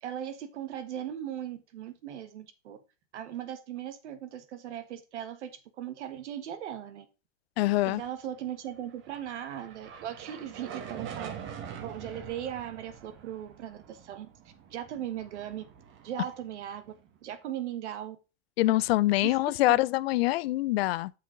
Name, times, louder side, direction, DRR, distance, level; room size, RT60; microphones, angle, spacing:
voice 1, 0.0-2.8 3.1-7.0 7.8-11.3 11.8-14.3 14.7-15.6 16.0-16.9 17.2-18.2 19.2-19.3 19.7-19.8, right 10 dB, 70° right, 1.6 m, -38 dB
voice 2, 7.6-8.0 18.6-21.1, left 17 dB, 55° left, 0.5 m, -25 dB
sound 1, 8.8-17.2, right 8 dB, 30° right, 1.6 m, -45 dB
6.0 x 5.9 x 5.1 m
hypercardioid pair, 125°, 36 cm